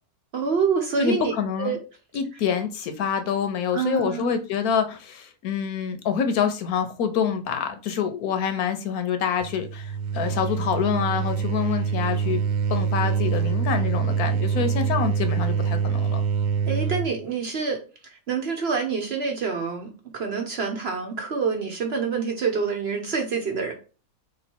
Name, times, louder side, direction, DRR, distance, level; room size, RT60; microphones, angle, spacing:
voice 1, 0.3-1.3 1.6-1.8 3.7-4.5 16.7-17.8 18.1-23.7, right 5 dB, 55° right, 0.8 m, -27 dB
voice 2, 1.0-1.8 2.1-12.4 12.7-16.2, left 7 dB, 80° left, 1.1 m, -26 dB
sound 1, 9.4-17.1, right 6 dB, 85° right, 1.1 m, -25 dB
3.1 x 3.0 x 4.3 m
omnidirectional pair, 1.6 m